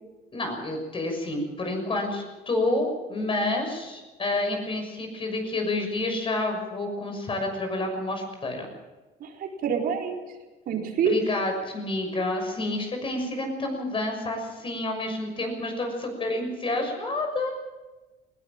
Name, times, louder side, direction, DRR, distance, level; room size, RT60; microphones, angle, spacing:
voice 1, 0.3-8.7 11.0-17.5, left 2 dB, 30° left, 4 dB, 6.4 m, -29 dB
voice 2, 9.2-10.2 10.7-11.1, right 7 dB, 65° right, 0 dB, 4.3 m, -27 dB
20.0 x 18.0 x 7.5 m, 1.2 s
cardioid pair, 110°, 17 cm